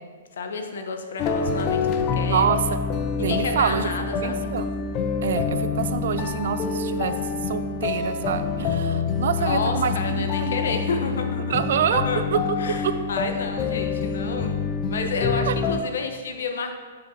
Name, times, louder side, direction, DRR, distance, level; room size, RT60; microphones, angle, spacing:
voice 1, 0.3-2.5 3.2-4.5 9.3-11.6 11.9-12.2 12.6-14.6 14.9-16.7, left 4 dB, 75° left, 5 dB, 0.8 m, -30 dB
sound 1, 1.2-15.8, left 5 dB, 35° left, 0.4 m, -26 dB
voice 2, 3.2-3.9 4.2-4.7 5.2-7.2 7.5-10.6 11.5-12.0 12.3-12.4 12.8-12.9 15.5-15.6, right 8 dB, 65° right, 11 dB, 0.4 m, -26 dB
7.3 x 6.4 x 2.7 m, 1.5 s
hypercardioid pair, 140°, 0 cm